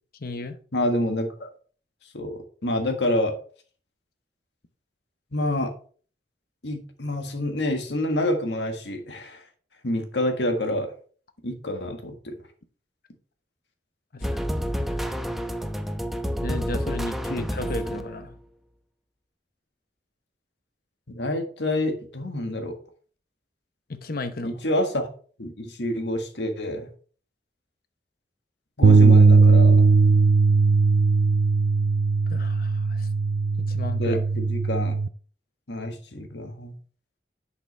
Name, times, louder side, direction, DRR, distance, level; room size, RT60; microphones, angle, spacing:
voice 1, 0.2-0.6 14.1-14.3 14.7-15.0 16.4-18.4 23.9-24.6 32.3-33.1 33.6-34.2, left 2 dB, 60° left, 0.9 m, -34 dB
voice 2, 0.7-1.5 2.1-3.4 5.3-5.7 6.6-9.4 9.8-10.9 11.4-12.4 21.1-22.7 24.4-25.1 25.4-26.9 28.8-29.9 34.0-35.0 35.7-36.7, left 1 dB, 75° left, 1.7 m, -27 dB
sound 1, 14.2-18.4, equal, ahead, 0.8 m, -29 dB
sound 2, 28.8-35.1, right 4 dB, 65° right, 0.4 m, -18 dB
11.0 x 5.9 x 3.4 m
head